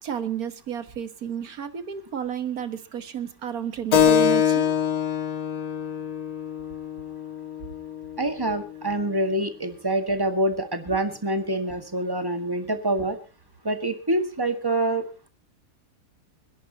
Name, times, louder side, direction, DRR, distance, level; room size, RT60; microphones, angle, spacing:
voice 1, 0.0-4.7, right 9 dB, 65° right, 11 dB, 1.8 m, -32 dB
Keyboard (musical), 3.9-9.0, left 8 dB, 70° left, 1.9 m, -25 dB
voice 2, 8.2-13.2 13.6-15.0, right 1 dB, 15° right, 7 dB, 1.7 m, -26 dB
26.5 x 11.0 x 2.9 m, 0.32 s
omnidirectional pair, 1.7 m